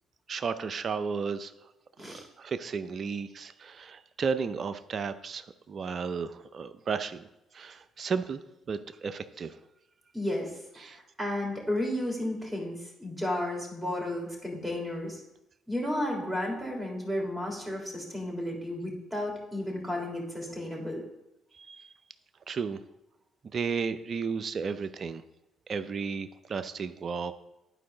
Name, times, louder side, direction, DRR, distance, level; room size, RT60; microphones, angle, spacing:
voice 1, 0.3-1.5 2.0-7.3 7.5-8.4 8.7-9.6 10.8-11.0 21.5-21.9 22.5-22.8 23.4-25.2 25.7-27.3, right 5 dB, 50° right, 12 dB, 0.5 m, -33 dB
voice 2, 10.1-15.2 15.7-21.0, left 1 dB, 5° right, -1 dB, 3.3 m, -33 dB
11.0 x 4.7 x 3.8 m, 0.90 s
hypercardioid pair, 55°, 0 cm